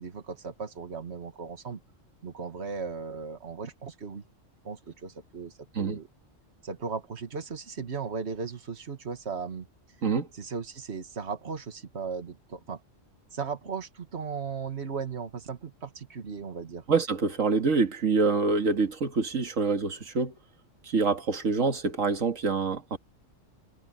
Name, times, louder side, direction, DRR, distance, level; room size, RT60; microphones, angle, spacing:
voice 1, 0.0-1.8 2.2-4.2 4.6-6.1 6.6-9.7 10.4-12.8 13.3-16.8, right 5 dB, 60° right, 2.0 m, -37 dB
voice 2, 16.9-20.3 20.8-23.0, right 4 dB, 85° right, 2.2 m, -26 dB
omnidirectional pair, 1.3 m